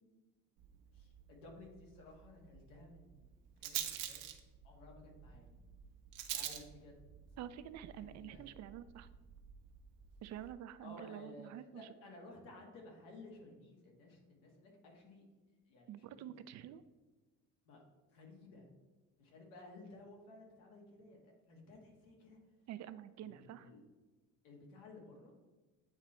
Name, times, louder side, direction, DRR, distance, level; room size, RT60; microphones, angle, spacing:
Rattle, 0.6-10.5, right 11 dB, 80° right, 0.8 m, -48 dB
voice 1, 0.9-4.3 4.6-5.5 6.3-7.0 7.3-7.4 7.9-8.4 10.8-15.3 15.7-16.3 17.6-18.7 19.2-22.4 23.2-23.8 24.4-25.4, left 2 dB, 90° left, 0 dB, 1.6 m, -56 dB
voice 2, 7.4-9.1 10.2-11.8 15.9-16.8 22.7-23.7, right 11 dB, 55° right, 13 dB, 0.4 m, -48 dB
8.9 x 3.0 x 4.2 m, 1.3 s
cardioid pair, 105°, 33 cm